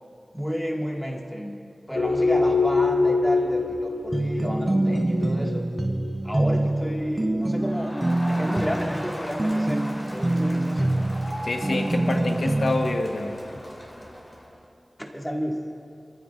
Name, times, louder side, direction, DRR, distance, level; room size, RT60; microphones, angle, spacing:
voice 1, 0.3-1.6 1.9-5.6 6.2-7.9 8.3-9.8 10.1-10.9 15.0-15.7, equal, 10° left, -1 dB, 1.9 m, -31 dB
sound 1, 1.9-8.1, left 3 dB, 55° left, 0.7 m, -25 dB
sound 2, 4.1-13.0, right 1 dB, 30° right, 0.3 m, -25 dB
Crowd, 7.5-14.6, equal, 35° left, 3.2 m, -38 dB
voice 2, 11.4-13.6, left 2 dB, 90° left, 3 dB, 1.2 m, -27 dB
27.5 x 15.0 x 2.5 m, 2.5 s
wide cardioid pair, 70°, 0 cm